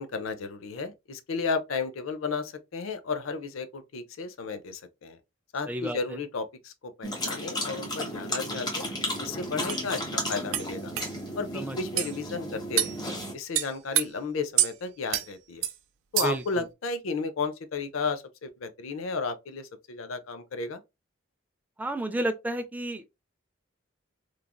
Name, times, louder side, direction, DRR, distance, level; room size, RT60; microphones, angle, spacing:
voice 1, 0.0-5.2 5.5-8.9 9.2-10.9 11.3-13.0 13.3-15.7 16.1-20.8, left 4 dB, 80° left, 0.5 m, -33 dB
voice 2, 5.7-6.0 11.5-11.8 16.2-16.4 21.8-23.1, right 1 dB, 10° right, 0.3 m, -31 dB
sound 1, 7.0-13.3, left 1 dB, 20° left, 0.8 m, -34 dB
sound 2, 9.1-9.2 9.7-9.8 10.5-10.7 11.0-11.1 12.0-12.1 12.8-13.0 13.5-14.1 14.6-14.7 15.1-15.3 15.6-15.8 16.2-16.5, right 12 dB, 80° right, 0.4 m, -26 dB
3.1 x 2.5 x 2.2 m
head